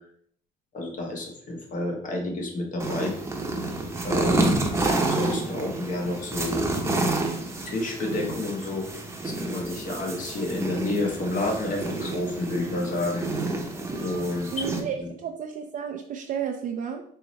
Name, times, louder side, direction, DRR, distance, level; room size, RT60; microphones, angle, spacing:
voice 1, 0.7-3.1 4.0-4.6 5.0-7.2 7.6-8.9 9.2-13.3 14.0-14.7 15.0-15.1, left 2 dB, 50° left, 1 dB, 1.2 m, -30 dB
sound 1, 2.8-14.8, right 2 dB, 15° right, 0.8 m, -29 dB
voice 2, 14.5-17.0, right 7 dB, 50° right, 4 dB, 0.4 m, -32 dB
4.5 x 3.1 x 3.1 m, 0.65 s
cardioid pair, 110°, 17 cm